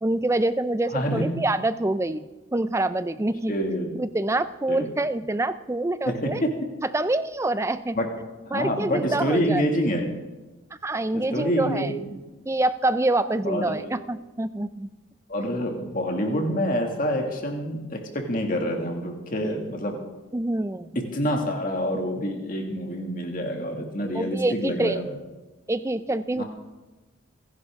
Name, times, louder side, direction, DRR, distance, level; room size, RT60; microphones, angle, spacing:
voice 1, 0.0-3.5 3.9-6.4 6.8-8.0 8.5-9.6 10.8-11.9 12.5-14.9 20.3-20.9 24.1-25.0 25.7-26.4, right 2 dB, 15° right, 13 dB, 0.4 m, -26 dB
voice 2, 0.9-1.3 3.5-3.9 4.7-4.9 6.1-6.5 8.0-8.1 8.5-10.1 11.1-12.2 13.4-13.9 15.3-20.0 21.1-25.1 26.4-26.5, equal, 40° left, 2 dB, 2.1 m, -27 dB
26.0 x 11.0 x 3.6 m, 1.2 s
head